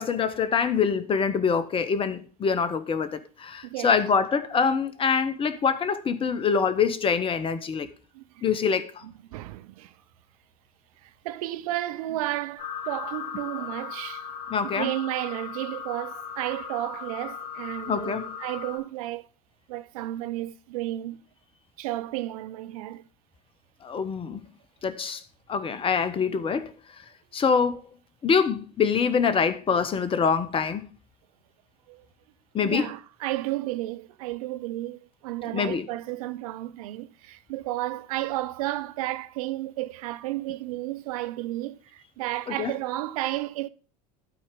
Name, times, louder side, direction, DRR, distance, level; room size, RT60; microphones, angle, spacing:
voice 1, 0.0-7.9 8.4-9.0 14.5-14.9 17.9-18.3 23.8-24.4 24.8-25.2 25.5-26.7 27.3-27.8 28.2-30.9 32.5-32.9 35.5-35.9 42.5-42.7, left 6 dB, 25° left, 0.9 m, -25 dB
voice 2, 3.6-4.0 8.1-8.4 9.0-9.9 11.0-14.2 14.6-19.3 19.7-21.2 21.8-23.0 31.9-32.1 32.6-43.7, right 16 dB, 60° right, 0.6 m, -32 dB
sound 1, 12.6-18.8, left 7 dB, 50° left, 1.7 m, -37 dB
12.5 x 4.3 x 5.1 m
figure-of-eight pair, 75°, 21 cm